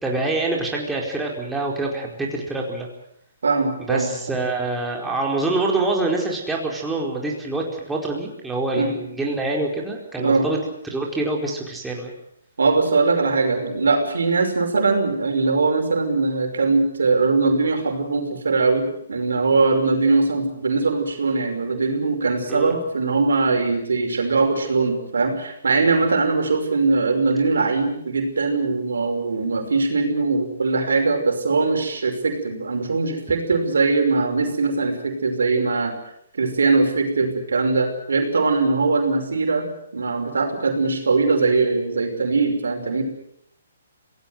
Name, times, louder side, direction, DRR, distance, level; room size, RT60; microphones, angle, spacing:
voice 1, 0.0-2.9 3.9-10.6 10.8-12.1 22.5-22.7, right 2 dB, 5° right, -2 dB, 4.7 m, -25 dB
voice 2, 3.4-4.1 8.8-9.0 10.2-10.4 12.6-35.9 36.3-43.0, right 3 dB, 75° right, 4 dB, 5.7 m, -21 dB
25.5 x 18.5 x 8.0 m, 0.72 s
hypercardioid pair, 140°, 0 cm